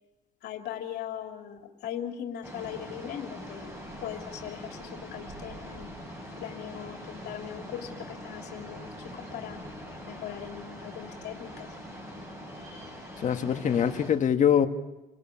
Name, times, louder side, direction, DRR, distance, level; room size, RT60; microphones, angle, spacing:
voice 1, 0.4-3.7 4.0-5.9 6.4-9.6 10.1-11.7, left 10 dB, 75° left, 3 dB, 2.9 m, -39 dB
sound 1, 2.4-14.1, equal, 15° right, 8.0 m, -43 dB
voice 2, 13.2-14.7, left 8 dB, 45° left, 8 dB, 1.5 m, -23 dB
27.0 x 18.0 x 8.7 m, 1.1 s
cardioid pair, 110°, 17 cm